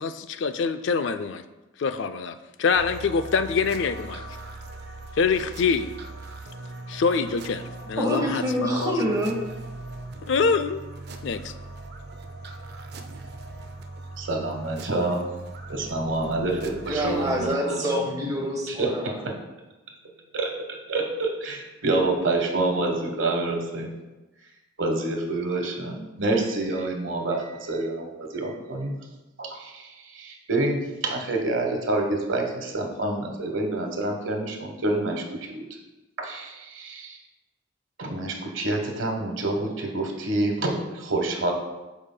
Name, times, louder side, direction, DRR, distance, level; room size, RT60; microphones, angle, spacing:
voice 1, 0.0-1.4 1.8-4.2 5.2-5.9 6.9-8.9 10.2-10.9 11.2-11.5, left 5 dB, 65° left, 10 dB, 0.4 m, -25 dB
sound 1, 2.8-17.5, right 2 dB, 55° right, 0.5 m, -40 dB
voice 2, 8.0-9.4 16.9-19.2, equal, 20° right, -1 dB, 1.1 m, -26 dB
voice 3, 14.2-15.2 15.7-17.8 18.7-19.3 20.3-20.5 20.9-23.9 24.8-28.9 29.4-35.2 35.5-35.6 36.2-37.2 38.0-41.5, right 2 dB, 75° right, 2 dB, 1.2 m, -27 dB
12.5 x 4.9 x 2.2 m, 1.1 s
head